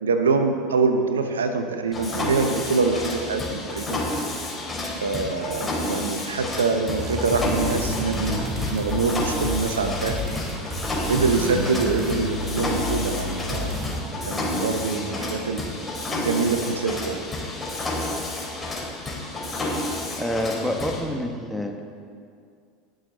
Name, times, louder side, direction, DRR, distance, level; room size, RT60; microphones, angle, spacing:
voice 1, 0.0-4.0 5.0-8.4 8.7-10.2 11.1-13.9 14.3-15.6 16.1-17.2, right 4 dB, 90° right, 7 dB, 0.8 m, -24 dB
Mechanisms, 1.9-21.0, left 1 dB, 20° left, 3.4 m, -30 dB
sound 1, 7.0-14.0, left 1 dB, 20° right, 3.1 m, -31 dB
voice 2, 20.2-21.9, left 1 dB, ahead, 2 dB, 1.4 m, -27 dB
19.5 x 6.5 x 4.0 m, 2.2 s
hypercardioid pair, 85°, 0 cm